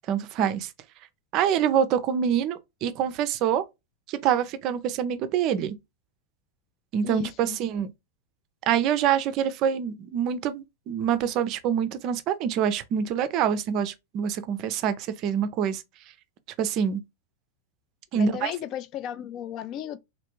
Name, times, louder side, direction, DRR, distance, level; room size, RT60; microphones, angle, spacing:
voice 1, 0.1-0.7 1.3-3.6 4.1-5.8 6.9-7.9 8.7-15.8 16.6-17.0 18.1-18.5, right 8 dB, 40° right, 0.4 m, -25 dB
voice 2, 7.0-7.6 18.1-20.0, left 11 dB, 35° left, 0.3 m, -35 dB
3.2 x 2.6 x 2.9 m
figure-of-eight pair, 90°, 0 cm